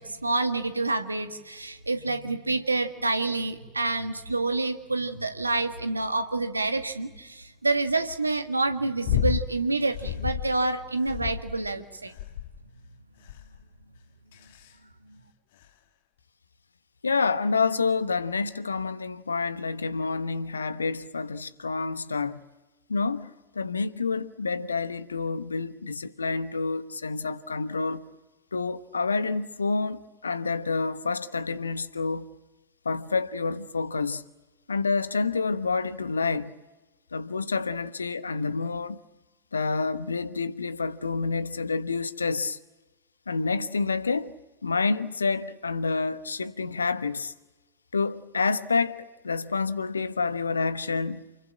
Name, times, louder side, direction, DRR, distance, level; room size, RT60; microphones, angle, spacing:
voice 1, 0.0-12.1 15.1-15.2, right 2 dB, 80° right, 1.9 m, -28 dB
sound 1, 9.0-9.5 9.9-10.5 11.0-11.7 12.2-12.6 13.3-13.6 14.3-14.7 15.6-15.7, left 12 dB, 55° left, 1.4 m, -30 dB
voice 2, 17.0-22.4 22.9-28.1 28.5-32.3 32.8-34.2 34.7-36.5 37.1-39.0 39.5-42.6 43.3-44.3 44.6-47.3 47.9-51.3, left 4 dB, 75° left, 1.2 m, -28 dB
29.0 x 22.0 x 8.8 m
figure-of-eight pair, 90°, 0 cm